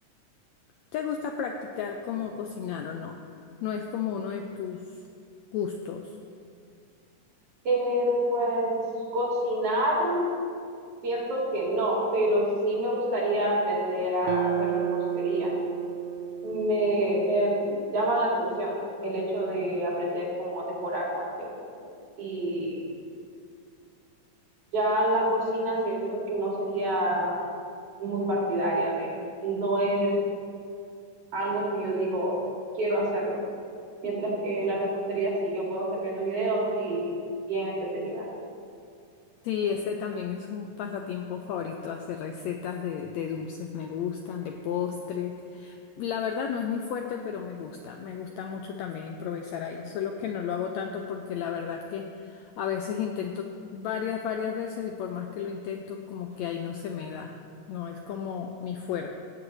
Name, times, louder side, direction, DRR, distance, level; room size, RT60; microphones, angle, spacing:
voice 1, 0.9-5.0 5.5-6.1 39.4-57.4 57.7-59.2, left 7 dB, 85° left, 3 dB, 1.6 m, -33 dB
voice 2, 7.6-8.8 9.1-10.3 11.0-15.5 16.4-17.5 17.9-21.5 22.2-22.8 24.7-27.3 28.0-29.1 29.4-30.1 31.3-32.4 32.7-33.4 34.0-37.1 37.5-38.2, right 1 dB, 50° right, -5 dB, 3.4 m, -27 dB
sound 1, 14.2-18.6, right 11 dB, 80° right, 1.7 m, -33 dB
17.0 x 8.7 x 3.2 m, 2.4 s
omnidirectional pair, 3.7 m